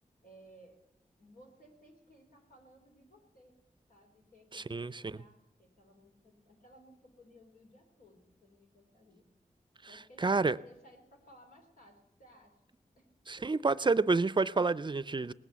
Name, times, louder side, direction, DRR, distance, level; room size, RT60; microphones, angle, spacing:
voice 1, 0.2-0.8 1.2-3.6 3.9-9.3 9.9-12.6 13.0-13.1 13.4-13.5, equal, 90° left, 3.8 m, -59 dB
voice 2, 4.5-5.1 10.2-10.6 13.3-15.3, right 3 dB, 35° right, 0.4 m, -29 dB
19.5 x 8.6 x 8.1 m
wide cardioid pair, 70°, 14 cm